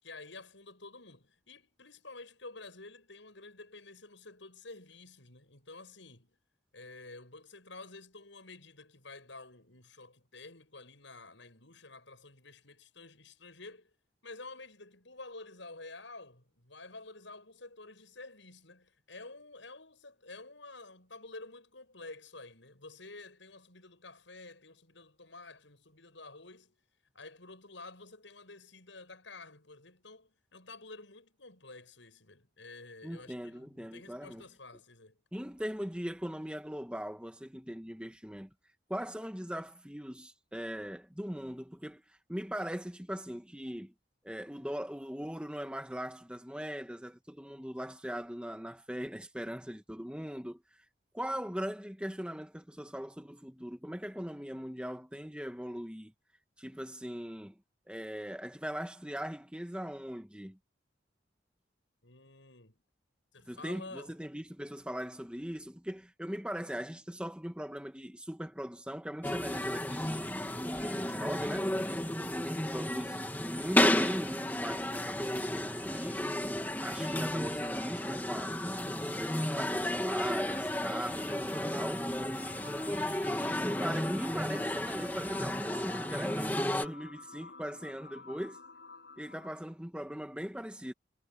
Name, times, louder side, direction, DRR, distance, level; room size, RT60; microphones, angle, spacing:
voice 1, 0.0-6.4 6.7-13.9 14.2-26.8 27.1-35.2 62.0-62.8 63.3-64.1 72.0-72.5, left 3 dB, 80° left, 7.5 m, -50 dB
voice 2, 33.0-34.4 35.3-38.5 38.9-43.9 44.2-50.8 51.1-56.1 56.6-57.6 57.9-60.6 63.5-71.7 72.3-76.2 76.8-82.1 82.9-88.6 89.2-90.9, equal, 5° right, 1.4 m, -40 dB
sound 1, 69.2-86.9, left 1 dB, 10° left, 2.4 m, -33 dB
sound 2, 73.8-89.7, left 3 dB, 60° left, 7.7 m, -53 dB
head